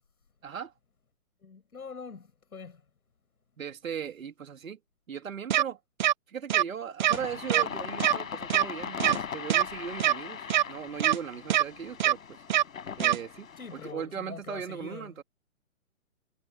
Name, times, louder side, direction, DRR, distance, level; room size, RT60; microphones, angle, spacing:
voice 1, 0.4-0.7 3.6-4.8 5.1-5.8 6.3-12.4 13.0-15.2, right 7 dB, 65° right, 3.9 m, -38 dB
voice 2, 1.4-2.8 13.6-15.1, left 5 dB, 85° left, 6.9 m, -44 dB
sound 1, 5.5-5.6 6.0-6.1 6.5-6.6 7.0-7.2 7.5-7.6 8.0-8.1 8.5-8.6 9.0-9.2 9.5-9.6 10.0-10.1 10.5-10.6 11.0-11.2 11.5-11.6 12.0-12.1 12.5-12.6 13.0-13.2, right 11 dB, 30° right, 1.2 m, -23 dB
sound 2, 7.1-13.9, left 7 dB, 70° left, 6.4 m, -39 dB
hypercardioid pair, 155°, 43 cm